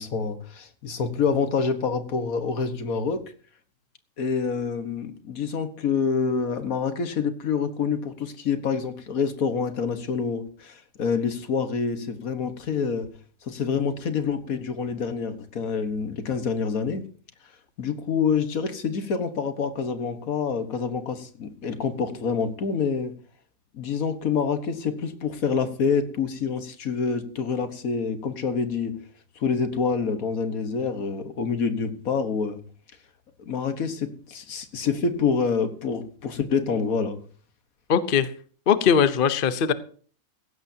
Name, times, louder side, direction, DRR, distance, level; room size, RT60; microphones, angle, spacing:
voice 1, 0.0-3.2 4.2-13.1 13.4-17.1 17.8-23.1 23.7-29.0 29.4-32.6 33.5-37.2, left 5 dB, 80° left, 1.8 m, -27 dB
voice 2, 37.9-38.3 38.7-39.7, left 7 dB, 45° left, 0.9 m, -20 dB
17.5 x 15.5 x 2.8 m
omnidirectional pair, 1.5 m